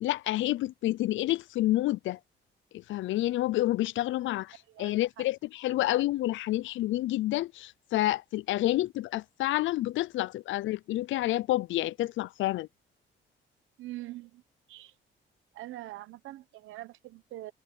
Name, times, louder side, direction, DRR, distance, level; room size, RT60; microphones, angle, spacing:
voice 1, 0.0-2.2 2.7-12.7, left 16 dB, 75° left, 0.4 m, -29 dB
voice 2, 4.7-5.3 13.8-14.4 14.7-14.9 15.5-17.5, right 16 dB, 85° right, 1.1 m, -43 dB
cardioid pair, 90°, 20 cm